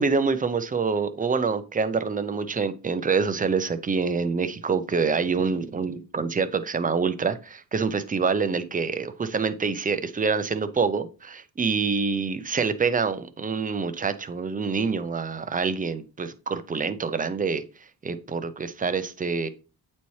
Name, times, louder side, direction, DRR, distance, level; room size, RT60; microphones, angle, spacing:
voice 1, 0.0-17.6 18.0-19.5, right 5 dB, 20° right, 10 dB, 0.5 m, -26 dB
8.2 x 4.2 x 3.1 m, 0.35 s
cardioid pair, 130°, 39 cm